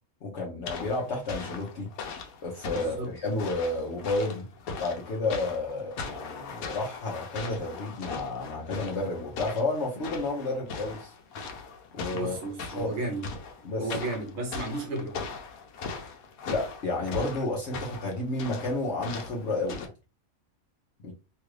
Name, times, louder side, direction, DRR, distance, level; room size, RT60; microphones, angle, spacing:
voice 1, 0.2-1.9 2.4-4.5 4.8-11.1 11.9-12.4 12.7-12.9 13.6-14.0 16.4-19.9 21.0-21.1, left 2 dB, 60° left, 1.0 m, -31 dB
sound 1, 0.7-19.9, left 4 dB, 90° left, 1.1 m, -40 dB
voice 2, 2.7-3.1 12.1-13.3 13.8-15.2, right 2 dB, 60° right, 1.0 m, -33 dB
3.0 x 2.4 x 3.1 m
omnidirectional pair, 1.5 m